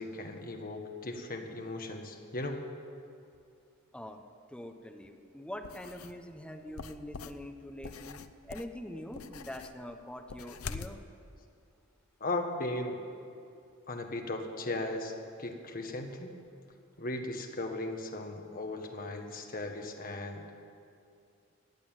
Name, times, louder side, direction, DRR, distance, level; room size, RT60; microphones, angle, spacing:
voice 1, 0.0-2.6 12.2-13.0 13.9-15.1 15.4-16.3 17.0-20.4, left 2 dB, 45° left, 4 dB, 1.4 m, -37 dB
voice 2, 4.5-11.0, left 1 dB, 5° left, 5 dB, 0.8 m, -44 dB
sound 1, 5.6-6.2 6.8-11.0, left 5 dB, 85° left, 0.6 m, -44 dB
15.0 x 9.3 x 9.0 m, 2.5 s
head